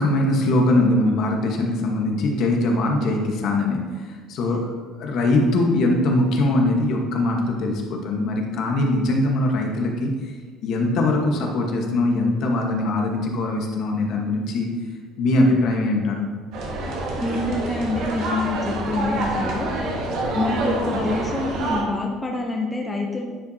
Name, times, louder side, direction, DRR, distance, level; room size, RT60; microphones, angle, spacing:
voice 1, 0.0-3.9 4.3-10.1 10.6-14.7 15.2-16.3, left 2 dB, 55° left, 1 dB, 1.1 m, -21 dB
sound 1, 16.5-21.8, right 2 dB, 65° right, 1.3 m, -26 dB
voice 2, 17.2-19.7 20.3-23.2, left 2 dB, 10° left, 0 dB, 0.6 m, -26 dB
10.0 x 5.1 x 2.7 m, 1.5 s
cardioid pair, 160°, 0 cm